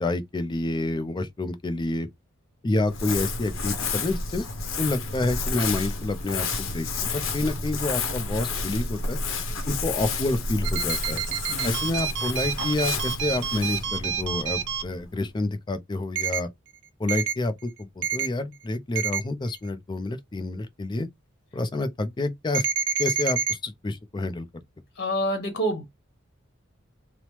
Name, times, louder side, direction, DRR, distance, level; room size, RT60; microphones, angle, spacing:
voice 1, 0.0-2.1 2.6-4.5 4.8-9.2 9.7-11.2 11.6-16.5 17.0-21.1 21.5-22.7 23.0-24.5, left 2 dB, 20° left, 0.4 m, -28 dB
Crumpling crinkling, 2.8-15.3, left 3 dB, 75° left, 0.7 m, -31 dB
sound 1, 10.6-14.8 16.2-16.4 17.1-17.3 18.0-18.3 19.0-19.2 22.5-23.5, right 7 dB, 60° right, 0.4 m, -28 dB
voice 2, 25.0-25.8, equal, 55° left, 1.1 m, -27 dB
3.0 x 2.0 x 3.0 m
head